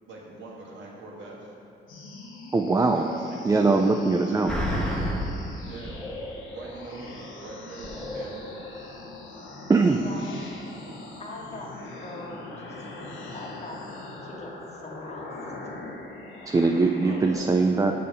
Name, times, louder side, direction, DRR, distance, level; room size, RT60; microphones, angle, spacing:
voice 1, 0.1-1.5 2.9-3.8 4.1-4.6 5.6-5.9 6.5-8.4 17.0-17.5, right 2 dB, 65° right, -3 dB, 1.7 m, -42 dB
sound 1, 1.9-17.3, left 2 dB, 80° left, 1.1 m, -42 dB
voice 2, 2.5-3.0 3.4-4.5 9.7-10.0 16.4-17.9, right 3 dB, 15° right, 3 dB, 0.4 m, -21 dB
sound 2, 4.5-5.4 5.9-6.7 7.1-7.2 7.8-8.7 9.1-9.2, equal, 5° left, 1.1 m, -31 dB
voice 3, 9.9-10.4 11.2-13.8 14.2-15.8, left 1 dB, 35° left, -1 dB, 1.4 m, -42 dB
6.7 x 5.6 x 5.3 m, 2.9 s
cardioid pair, 90°, 20 cm